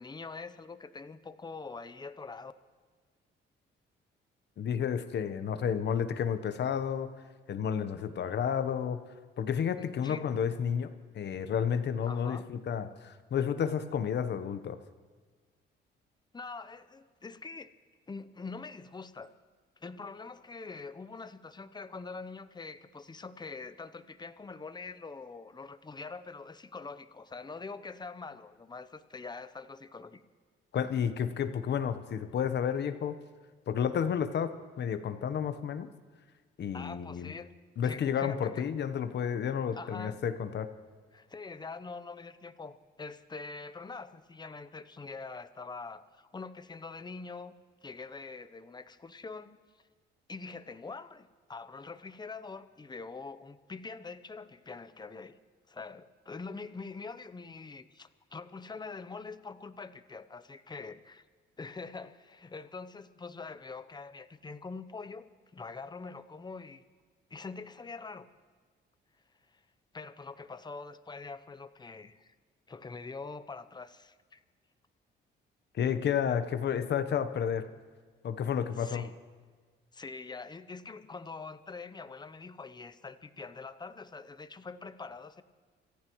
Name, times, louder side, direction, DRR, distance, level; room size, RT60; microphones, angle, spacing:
voice 1, 0.0-2.5 9.8-10.3 12.1-12.5 16.3-17.7 18.1-19.3 19.8-30.2 36.7-37.5 37.8-38.7 39.7-40.2 41.1-47.5 47.8-49.6 50.3-55.3 55.7-61.2 61.6-66.8 67.3-68.3 69.5-69.6 69.9-72.3 72.7-74.4 78.8-79.2 79.9-85.4, left 4 dB, 20° left, 13 dB, 0.7 m, -44 dB
voice 2, 4.6-7.1 7.5-9.0 9.4-14.8 30.7-33.2 33.7-35.9 36.6-37.3 37.8-40.7 75.7-77.7 78.2-79.1, left 8 dB, 60° left, 10 dB, 1.0 m, -31 dB
26.5 x 15.0 x 3.1 m, 1.5 s
cardioid pair, 90°, 20 cm